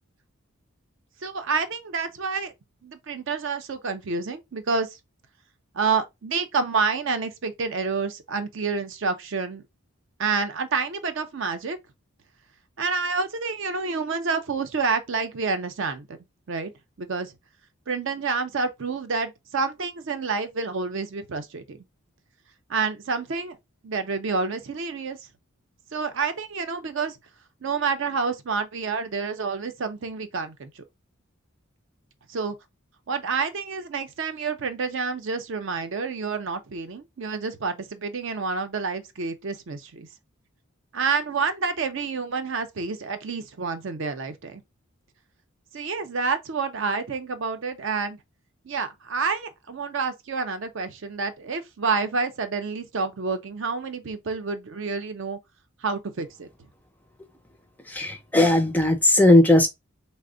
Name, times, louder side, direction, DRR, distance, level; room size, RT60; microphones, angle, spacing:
voice 1, 1.2-2.5 2.8-4.9 5.7-9.6 10.2-11.8 12.8-16.2 16.5-16.7 17.0-17.3 17.9-21.8 22.7-23.6 23.8-25.2 25.9-27.2 27.6-30.8 32.3-32.6 33.1-40.1 40.9-44.6 45.7-48.2 48.7-55.4 55.8-56.5, right 4 dB, 60° right, 0.5 m, -28 dB
voice 2, 57.9-59.7, left 1 dB, 10° left, 0.3 m, -17 dB
3.3 x 2.0 x 3.7 m
head